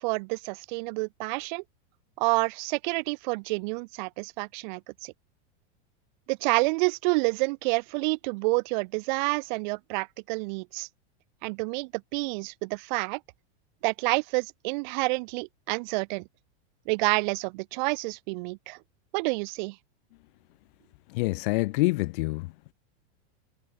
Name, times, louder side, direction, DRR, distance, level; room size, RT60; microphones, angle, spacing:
voice 1, 0.0-1.6 2.2-5.1 6.3-10.9 11.4-13.2 13.8-16.3 16.9-18.8 19.1-19.8, right 27 dB, 45° right, 0.6 m, -28 dB
voice 2, 21.1-22.5, left 23 dB, 50° left, 0.5 m, -26 dB
supercardioid pair, 155°, 34 cm